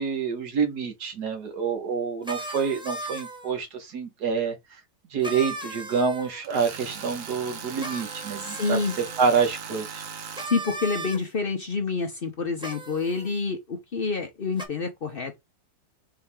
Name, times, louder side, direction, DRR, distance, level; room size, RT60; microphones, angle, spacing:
voice 1, 0.0-4.6 5.1-8.8 9.2-10.0, right 5 dB, 85° right, 1.8 m, -27 dB
sound 1, 2.2-3.5 5.2-6.4 7.8-9.2 10.3-11.2 12.6-13.3 14.6-14.7, right 2 dB, 5° right, 0.5 m, -37 dB
Tools, 6.4-10.5, right 6 dB, 60° right, 1.2 m, -38 dB
voice 2, 8.4-8.9 10.5-15.4, left 4 dB, 45° left, 0.8 m, -28 dB
4.7 x 2.9 x 3.5 m
omnidirectional pair, 1.7 m